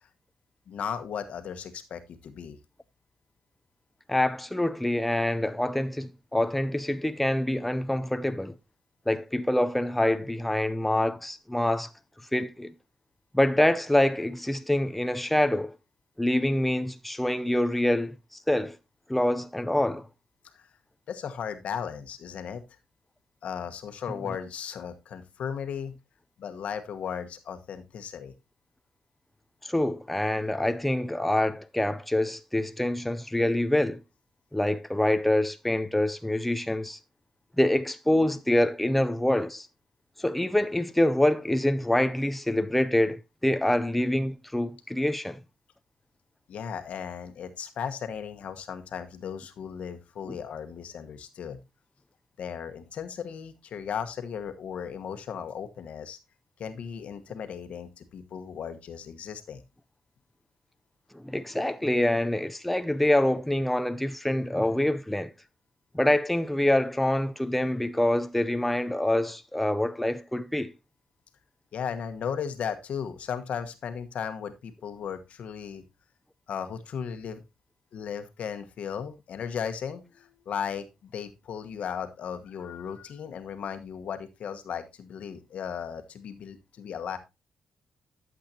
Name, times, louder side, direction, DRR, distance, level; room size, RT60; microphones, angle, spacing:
voice 1, 0.7-2.6 20.5-20.6 21.1-22.6 23.4-25.9 26.4-28.3 46.5-51.6 52.4-56.2 56.6-59.6 71.7-75.8 76.5-77.4 77.9-87.2, left 7 dB, 70° left, 1.1 m, -36 dB
voice 2, 4.1-8.6 9.1-11.9 12.3-12.7 13.3-15.7 16.2-18.8 19.1-20.1 24.2-24.4 29.6-34.0 34.5-37.0 37.6-39.7 40.2-45.4 50.3-50.4 61.1-65.3 65.9-70.7, left 1 dB, 5° left, 0.5 m, -26 dB
12.0 x 7.5 x 2.8 m
cardioid pair, 100°, 2 cm